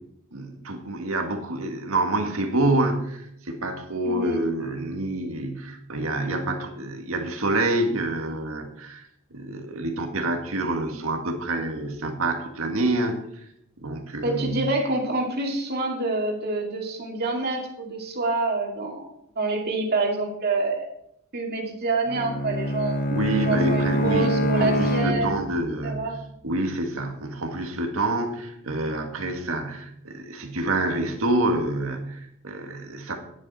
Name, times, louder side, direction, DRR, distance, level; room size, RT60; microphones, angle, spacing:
voice 1, 0.3-9.0 9.3-13.2 13.8-14.7 23.1-26.1 26.4-33.1, right 2 dB, 75° right, 4 dB, 1.9 m, -27 dB
voice 2, 4.0-4.4 14.2-20.9 21.3-23.0 23.4-25.4 25.8-26.1, right 2 dB, 50° right, 0 dB, 2.3 m, -27 dB
Bowed string instrument, 22.1-25.7, equal, 45° left, 0.8 m, -25 dB
11.0 x 10.5 x 4.3 m, 0.76 s
head